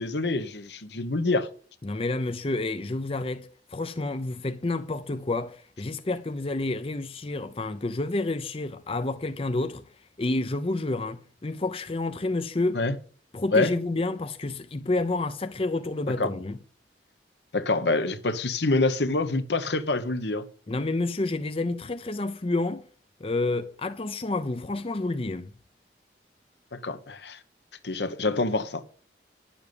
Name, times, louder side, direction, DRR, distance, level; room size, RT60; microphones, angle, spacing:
voice 1, 0.0-1.5 12.7-13.0 13.5-13.7 16.2-16.3 17.5-20.4 26.7-27.4 27.8-28.8, left 2 dB, 75° left, 1.1 m, -26 dB
voice 2, 1.8-9.8 10.2-12.8 13.3-16.6 20.7-22.9 23.2-25.5, left 2 dB, 30° left, 0.6 m, -29 dB
11.0 x 7.2 x 6.8 m
head